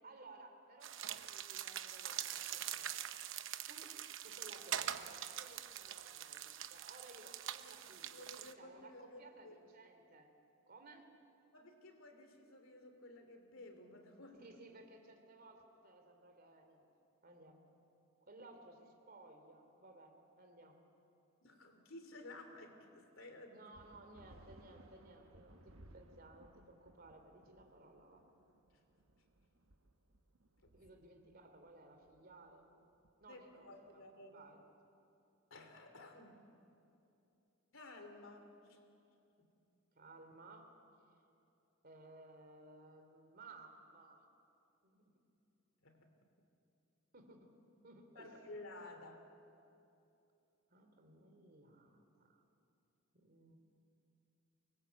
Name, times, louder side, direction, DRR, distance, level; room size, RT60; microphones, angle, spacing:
voice 1, 0.0-2.9 3.7-10.3 10.7-11.1 14.4-16.8 17.2-17.6 18.2-20.8 23.5-28.3 30.7-32.7 33.2-34.6 39.9-40.7 41.8-44.2 44.9-45.0 47.1-47.5 47.8-48.3 50.7-52.4 53.1-53.6, right 2 dB, 50° right, 5 dB, 3.0 m, -59 dB
sound 1, 0.8-8.5, right 10 dB, 65° right, 0.8 m, -44 dB
voice 2, 8.0-9.7 11.5-14.5 21.4-23.7 30.6-30.7 33.2-34.4 35.5-36.4 37.7-38.8 39.4-39.5 45.8-46.1 48.1-49.2, left 2 dB, 75° left, 6 dB, 3.0 m, -54 dB
sound 2, 23.7-33.7, right 1 dB, 90° right, 1.3 m, -63 dB
24.5 x 21.0 x 8.2 m, 2.7 s
head